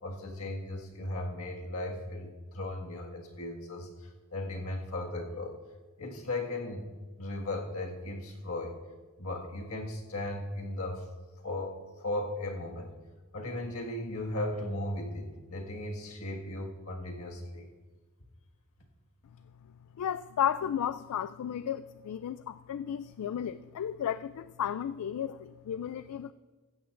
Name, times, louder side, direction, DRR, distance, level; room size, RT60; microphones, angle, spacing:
voice 1, 0.0-5.6 6.0-6.9 7.2-8.8 9.2-11.1 11.4-13.0 13.3-17.6, left 1 dB, 65° left, 0 dB, 1.8 m, -37 dB
voice 2, 20.0-26.3, left 9 dB, 85° left, 14 dB, 0.3 m, -33 dB
16.0 x 14.5 x 2.5 m, 1.3 s
head